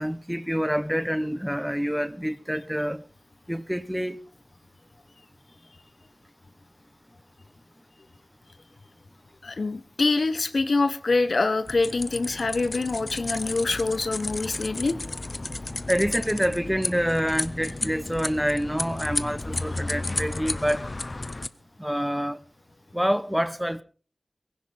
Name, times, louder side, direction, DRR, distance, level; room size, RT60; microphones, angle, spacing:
voice 1, 0.0-3.0 3.5-4.2 15.9-20.9 21.8-22.4 22.9-23.8, equal, 5° right, 0.8 m, -27 dB
voice 2, 9.4-15.0, left 3 dB, 75° left, 1.1 m, -25 dB
sound 1, 11.7-21.5, left 2 dB, 50° left, 0.7 m, -33 dB
19.0 x 16.5 x 3.5 m
cardioid pair, 45°, 0 cm